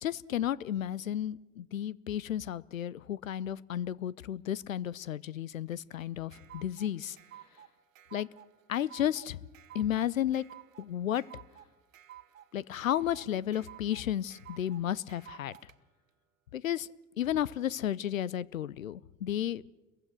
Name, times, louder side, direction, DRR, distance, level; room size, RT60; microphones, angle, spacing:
voice 1, 0.0-7.2 8.1-8.3 8.7-9.4 9.7-10.4 10.8-11.2 12.5-15.6 16.5-16.9 17.2-19.6, left 11 dB, 80° left, 23 dB, 0.7 m, -33 dB
sound 1, 5.7-15.7, right 12 dB, 80° right, 1.0 m, -53 dB
29.5 x 22.5 x 6.4 m, 1.1 s
figure-of-eight pair, 70°, 39 cm